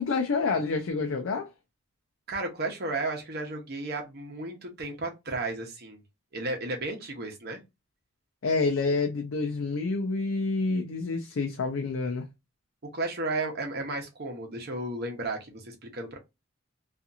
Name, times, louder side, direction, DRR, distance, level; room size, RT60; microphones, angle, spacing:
voice 1, 0.0-1.5 8.4-12.3, left 3 dB, 70° left, 0.5 m, -28 dB
voice 2, 2.3-6.0 6.3-7.6 12.8-16.2, right 2 dB, 50° right, 0.8 m, -33 dB
2.8 x 2.5 x 2.4 m
head